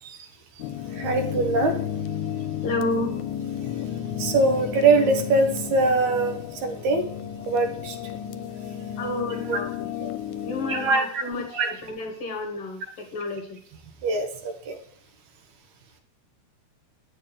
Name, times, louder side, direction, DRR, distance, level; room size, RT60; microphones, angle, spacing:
sound 1, 0.6-10.9, left 9 dB, 80° left, 2.0 m, -33 dB
voice 1, 1.0-1.7 4.2-7.0 7.5-8.0 9.5-9.6 10.0-10.1 10.7-11.7 14.0-14.8, right 3 dB, 75° right, 5 dB, 2.4 m, -23 dB
voice 2, 2.6-3.2 9.0-9.9 10.4-13.6, left 2 dB, 60° left, 3 dB, 1.8 m, -31 dB
9.3 x 6.5 x 3.7 m, 0.62 s
omnidirectional pair, 3.5 m